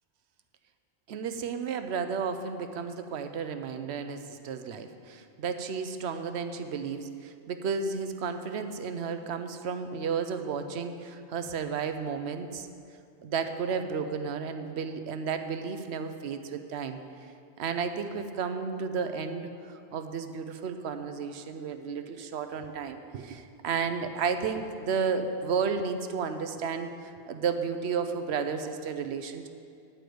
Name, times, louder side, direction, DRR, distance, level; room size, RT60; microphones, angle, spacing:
voice 1, 1.1-12.7 13.2-17.0 17.6-19.5 19.9-29.5, right 5 dB, 80° right, 8 dB, 0.9 m, -32 dB
10.5 x 5.0 x 7.7 m, 2.4 s
omnidirectional pair, 1.1 m